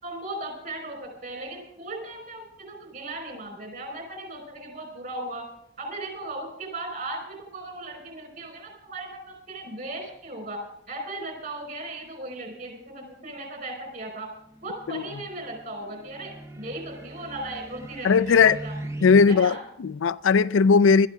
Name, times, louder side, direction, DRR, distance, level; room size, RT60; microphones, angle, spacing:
voice 1, 0.0-5.5 5.8-10.6 10.9-14.3 14.6-18.7 19.3-19.6, right 2 dB, 45° right, 5.0 m, -37 dB
sound 1, 14.4-19.3, right 1 dB, 15° right, 0.8 m, -41 dB
voice 2, 18.0-18.6 19.0-21.1, left 5 dB, 85° left, 0.4 m, -18 dB
20.0 x 13.0 x 3.7 m
head